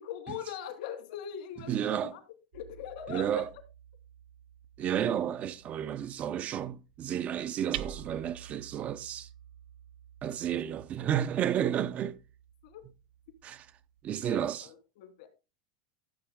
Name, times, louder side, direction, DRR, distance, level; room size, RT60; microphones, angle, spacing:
voice 1, 0.0-2.2 2.5-3.5 10.5-10.6 12.6-12.8 14.2-15.3, left 10 dB, 75° left, 2.9 m, -41 dB
voice 2, 1.7-2.1 3.1-3.5 4.8-9.3 10.2-12.2 13.4-13.7 14.0-14.7, right 10 dB, 35° right, 0.6 m, -31 dB
Hammer, 2.5-14.2, right 11 dB, 75° right, 0.8 m, -49 dB
14.0 x 7.2 x 3.8 m
supercardioid pair, 140°, 4 cm